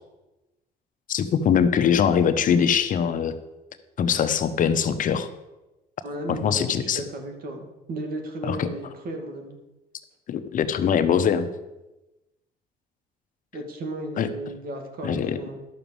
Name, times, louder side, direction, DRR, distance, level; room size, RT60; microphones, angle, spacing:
voice 1, 1.1-3.3 4.0-5.3 6.3-7.0 8.4-8.7 10.3-11.5 14.2-14.3 15.0-15.4, left 7 dB, 50° left, 10 dB, 0.9 m, -22 dB
voice 2, 6.0-9.6 13.5-15.6, right 1 dB, 60° right, 4 dB, 2.4 m, -34 dB
11.5 x 6.2 x 7.1 m, 1.0 s
cardioid pair, 110°, 17 cm